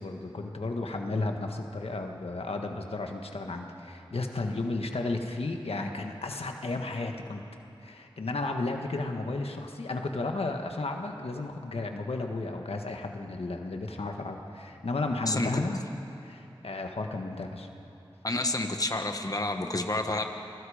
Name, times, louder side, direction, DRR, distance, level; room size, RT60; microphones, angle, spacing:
voice 1, 0.0-7.4 7.8-15.8 16.2-17.7, left 2 dB, 85° left, 3 dB, 1.6 m, -33 dB
voice 2, 15.3-15.6 18.2-20.3, left 2 dB, 40° left, 5 dB, 1.5 m, -29 dB
27.5 x 22.0 x 5.1 m, 2.9 s
wide cardioid pair, 55°, 10 cm